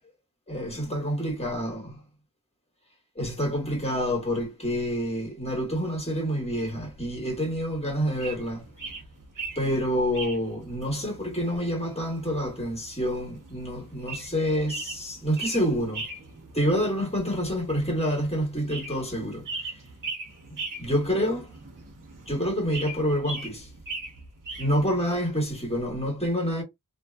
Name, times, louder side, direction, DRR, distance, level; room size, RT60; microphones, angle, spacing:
voice 1, 0.5-1.9 3.2-8.6 9.5-16.1 16.5-19.7 20.8-21.5 22.3-23.7 24.6-26.6, equal, 20° left, 1.5 m, -27 dB
sound 1, 6.5-24.9, right 3 dB, 75° right, 1.0 m, -41 dB
2.6 x 2.5 x 2.3 m
wide cardioid pair, 75°, 32 cm